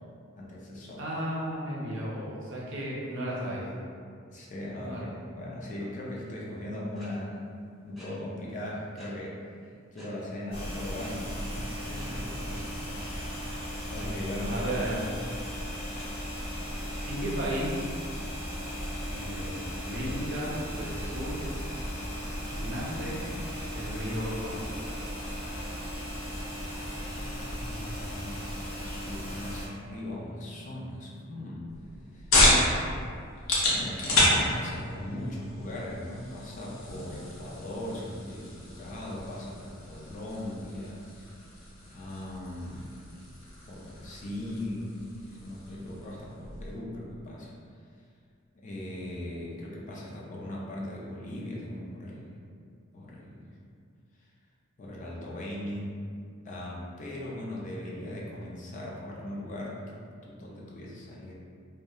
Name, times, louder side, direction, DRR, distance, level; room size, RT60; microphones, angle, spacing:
voice 1, 0.3-1.0 4.3-7.3 7.8-9.4 9.9-13.6 13.9-15.0 27.0-31.7 32.1-32.6 33.7-41.3 41.8-42.9 43.7-45.0 45.4-47.5 48.5-52.4 52.9-53.5 54.8-56.0 56.4-61.3, left 1 dB, 40° left, -4 dB, 0.4 m, -39 dB
voice 2, 1.0-3.7 4.8-5.1 11.8-12.0 14.5-15.0 17.1-17.9 19.0-21.4 22.5-23.2 23.7-24.9, equal, 65° right, -5 dB, 0.6 m, -34 dB
sound 1, 7.0-7.1 8.0-8.1 9.0-9.1 10.0-10.1 10.9-11.1 12.0-12.1 12.9-13.1 14.0-14.1 15.0-15.1 16.0-16.1, equal, ahead, 0.8 m, -51 dB
sound 2, 10.5-29.7, equal, 25° left, 1.0 m, -36 dB
sound 3, 31.7-46.8, left 1 dB, 80° left, 0.6 m, -31 dB
2.7 x 2.1 x 2.3 m, 2.2 s
head